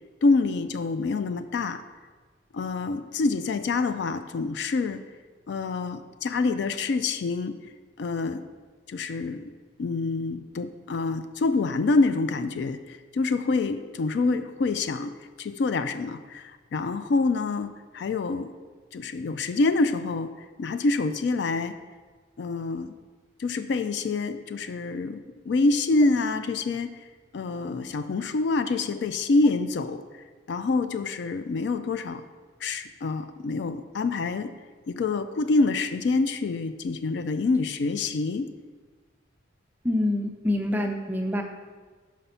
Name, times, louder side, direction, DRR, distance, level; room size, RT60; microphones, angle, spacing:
voice 1, 0.2-1.8 2.5-5.0 5.5-7.6 8.0-8.5 8.9-9.5 9.8-15.1 15.4-18.5 18.9-20.3 20.6-21.7 22.4-22.9 23.4-27.0 27.3-30.0 30.5-32.2 32.6-34.5 34.9-38.5, left 3 dB, 60° left, 11 dB, 0.3 m, -26 dB
voice 2, 39.8-41.4, left 1 dB, 10° right, 3 dB, 0.5 m, -26 dB
5.4 x 5.1 x 5.6 m, 1.4 s
head